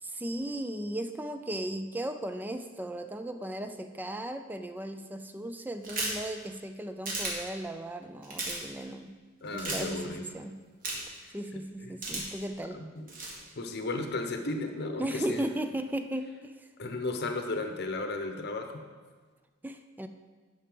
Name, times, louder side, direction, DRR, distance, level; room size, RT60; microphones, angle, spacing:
voice 1, 0.0-9.2 9.4-10.6 11.3-12.8 15.0-16.7 19.6-20.1, right 1 dB, 10° right, 8 dB, 0.3 m, -36 dB
sound 1, 5.8-6.2 7.1-7.3 8.2-8.6 9.6-9.8 10.8-11.2 12.0-12.4 13.1-13.4, right 2 dB, 45° right, 1.8 m, -33 dB
voice 2, 9.4-10.2 11.2-12.2 12.7-13.1 13.6-15.4 16.8-18.8, left 2 dB, 55° left, 5 dB, 0.8 m, -35 dB
9.2 x 5.6 x 5.0 m, 1.5 s
head